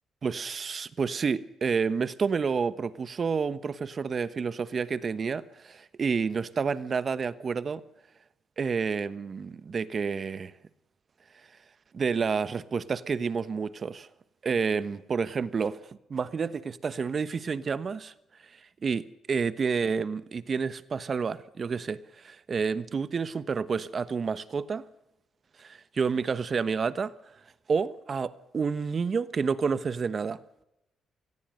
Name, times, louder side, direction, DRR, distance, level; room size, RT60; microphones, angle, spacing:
voice 1, 0.2-7.8 8.6-10.5 11.9-14.1 14.4-18.1 18.8-24.8 25.6-27.1 27.7-30.4, right 5 dB, 40° right, 1.2 m, -29 dB
27.0 x 20.0 x 6.6 m
cardioid pair, 90°, 0 cm